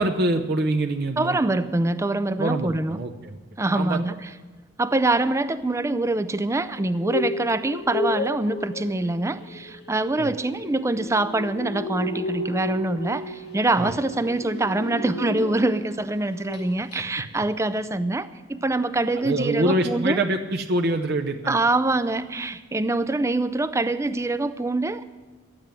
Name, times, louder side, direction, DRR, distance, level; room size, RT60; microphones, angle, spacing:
voice 1, 0.0-1.4 2.4-3.4 3.7-4.0 10.2-10.3 13.8-13.9 19.2-21.6, right 1 dB, 55° right, 3 dB, 0.7 m, -25 dB
voice 2, 1.2-3.0 3.6-4.3 4.8-20.2 21.5-25.0, right 2 dB, 15° right, 13 dB, 0.4 m, -24 dB
sound 1, 6.8-16.0 16.3-16.6 16.9-17.0, left 2 dB, 60° left, 1.2 m, -33 dB
12.0 x 8.9 x 9.0 m, 1.3 s
head